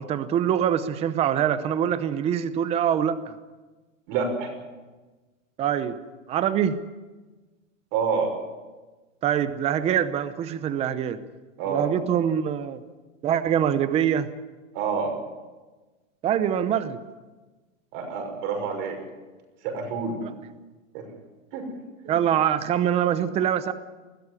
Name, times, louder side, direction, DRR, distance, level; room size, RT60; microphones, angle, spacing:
voice 1, 0.0-3.3 5.6-6.0 6.3-6.8 9.2-11.2 11.7-12.8 13.2-14.3 16.2-17.0 20.2-20.3 22.1-23.7, right 9 dB, 15° right, 13 dB, 0.8 m, -24 dB
voice 2, 4.1-4.5 7.9-8.3 11.6-11.9 14.7-15.1 17.9-19.0 19.6-20.2 20.9-21.0 21.5-21.7 22.0-22.1, right 5 dB, 40° right, 4 dB, 6.4 m, -27 dB
21.0 x 14.5 x 9.8 m, 1.2 s
hypercardioid pair, 150°, 39 cm